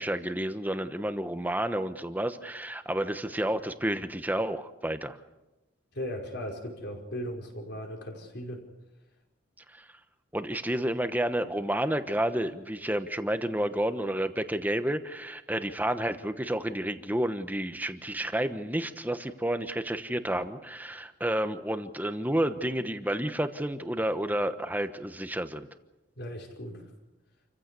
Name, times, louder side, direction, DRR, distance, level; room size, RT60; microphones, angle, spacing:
voice 1, 0.0-5.2 9.8-9.9 10.3-25.7, right 1 dB, 10° right, 9 dB, 1.1 m, -30 dB
voice 2, 5.9-8.6 26.2-26.9, equal, 60° left, 1 dB, 5.2 m, -37 dB
28.0 x 15.5 x 8.3 m, 1.0 s
head